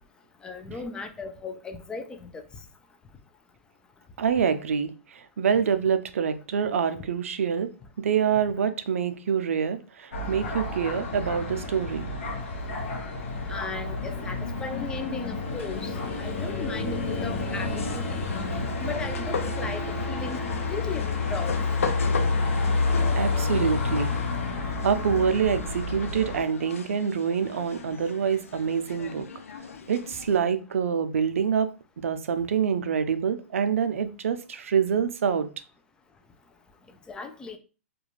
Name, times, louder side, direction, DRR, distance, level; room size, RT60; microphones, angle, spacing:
voice 1, 0.4-2.4 13.5-18.3 18.8-21.5 37.1-37.6, left 4 dB, 10° left, 0.4 m, -37 dB
voice 2, 4.2-7.7 8.0-12.1 23.2-24.2 24.8-29.3 29.9-35.5, right 7 dB, 75° right, 0.4 m, -26 dB
sound 1, 10.1-26.4, left 3 dB, 70° left, 0.9 m, -29 dB
sound 2, 17.8-30.4, left 5 dB, 85° left, 0.5 m, -39 dB
2.4 x 2.2 x 3.0 m
hypercardioid pair, 130°, 7 cm